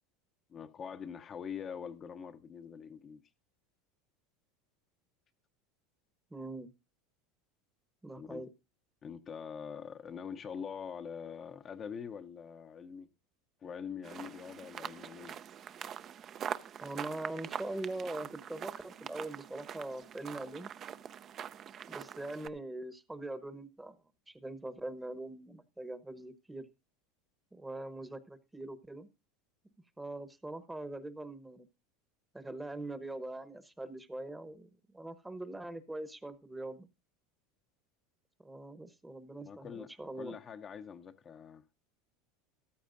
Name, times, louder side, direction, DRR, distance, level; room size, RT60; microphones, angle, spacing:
voice 1, 0.5-3.2 8.2-8.4 9.0-13.1 13.6-15.4 39.4-41.6, left 7 dB, 30° left, 0.7 m, -44 dB
voice 2, 6.3-6.7 8.0-8.5 16.8-20.7 21.9-24.0 24.3-26.7 27.5-29.1 30.0-31.7 32.3-36.9 38.4-40.3, right 2 dB, 10° right, 1.0 m, -42 dB
sound 1, 14.0-22.5, right 9 dB, 35° right, 0.6 m, -44 dB
14.0 x 13.0 x 2.6 m
supercardioid pair, 115°, 0 cm